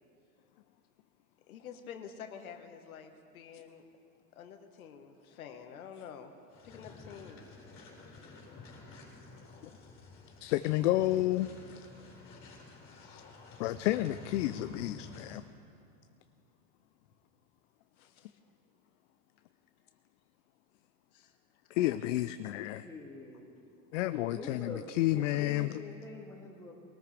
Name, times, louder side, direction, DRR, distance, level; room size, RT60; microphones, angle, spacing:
voice 1, 1.5-3.8 4.3-6.3 6.6-7.4 15.2-15.3 17.9-18.4 21.1-21.3 22.8-22.9, left 7 dB, 90° left, 5 dB, 1.5 m, -48 dB
sound 1, 6.5-15.5, left 3 dB, 30° left, 4.0 m, -51 dB
voice 2, 10.4-11.8 13.0-13.2 13.6-15.4 21.7-22.9 23.9-25.8, left 15 dB, 60° left, 12 dB, 0.5 m, -31 dB
voice 3, 22.8-23.4 24.3-26.7, left 2 dB, 5° left, -4 dB, 2.5 m, -46 dB
22.5 x 13.5 x 3.4 m, 2.5 s
supercardioid pair, 140°, 42 cm